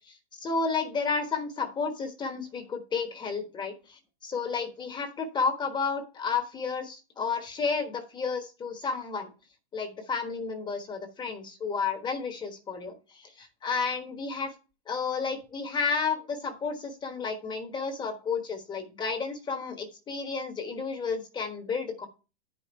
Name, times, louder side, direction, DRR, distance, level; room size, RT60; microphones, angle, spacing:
voice 1, 0.1-9.3 9.7-14.5 14.9-22.1, left 5 dB, 15° left, 5 dB, 1.3 m, -32 dB
10.5 x 5.3 x 4.4 m, 0.32 s
supercardioid pair, 160°, 32 cm